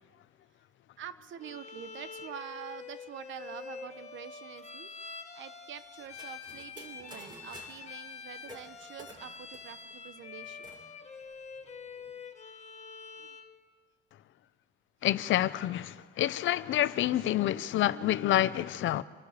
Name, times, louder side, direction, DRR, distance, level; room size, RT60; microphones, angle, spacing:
voice 1, 1.0-4.9 5.3-10.7 13.2-13.3, right 9 dB, 75° right, 1.0 m, -46 dB
Bowed string instrument, 1.4-13.5, left 5 dB, 35° left, 1.7 m, -46 dB
sound 1, 6.0-7.9 8.4-10.8 11.2-11.3 11.5-12.2, equal, 25° right, 5.6 m, -52 dB
voice 2, 15.0-19.0, left 13 dB, 75° left, 0.7 m, -28 dB
27.0 x 11.5 x 8.2 m
cardioid pair, 90°, 20 cm